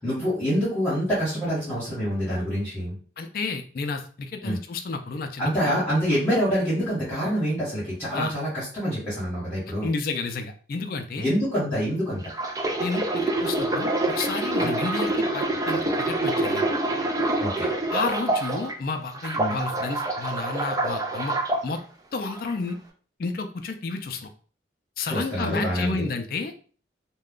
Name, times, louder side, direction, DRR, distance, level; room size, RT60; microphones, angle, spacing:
voice 1, 0.0-3.0 4.4-4.6 5.4-9.9 11.2-12.2 14.6-14.8 17.4-17.7 19.4-19.6 25.1-26.1, equal, 10° left, -10 dB, 1.2 m, -26 dB
voice 2, 3.2-5.8 8.1-8.3 9.8-11.3 12.8-16.7 17.9-21.4 21.6-21.8 22.1-22.8 23.2-24.3 25.0-26.5, left 4 dB, 55° left, 6 dB, 0.4 m, -31 dB
sound 1, 12.2-18.7 19.1-21.6 22.3-22.5, right 2 dB, 20° right, 0.3 m, -26 dB
2.4 x 2.2 x 3.5 m, 0.40 s
head